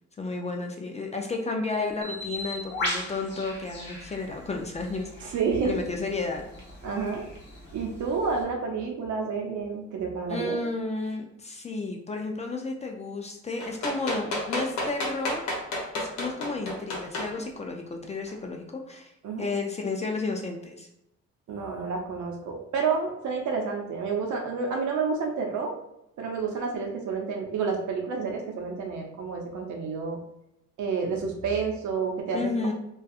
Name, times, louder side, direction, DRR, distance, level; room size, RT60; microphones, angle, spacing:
voice 1, 0.2-5.3 5.6-6.5 10.3-15.5 16.0-19.1 19.4-20.9 32.3-32.7, left 3 dB, 25° left, 2 dB, 0.3 m, -32 dB
Bird, 2.0-8.4, left 1 dB, 40° left, 1.0 m, -38 dB
voice 2, 5.2-5.7 6.8-7.3 7.7-10.6 19.2-19.5 21.5-25.7 26.2-30.2 30.8-32.7, right 5 dB, 75° right, 1 dB, 0.7 m, -29 dB
sound 1, 13.6-17.3 18.3-18.4, left 1 dB, 70° left, 0.9 m, -30 dB
2.6 x 2.3 x 2.3 m, 0.83 s
cardioid pair, 90°, 30 cm